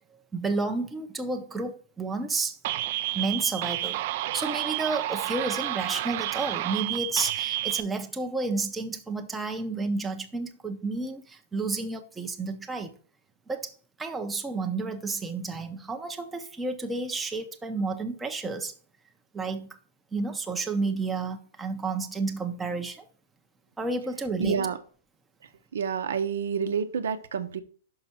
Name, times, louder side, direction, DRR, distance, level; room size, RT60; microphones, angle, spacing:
voice 1, 0.3-2.6 3.1-4.0 4.3-12.9 13.5-18.7 19.3-19.7 20.1-23.1 23.8-24.6, right 3 dB, 10° right, 0.6 m, -31 dB
sound 1, 2.6-7.8, right 15 dB, 50° right, 0.4 m, -30 dB
voice 2, 24.4-24.8 25.7-27.6, right 6 dB, 85° right, 0.8 m, -28 dB
5.7 x 5.5 x 4.2 m
hypercardioid pair, 155°, 0 cm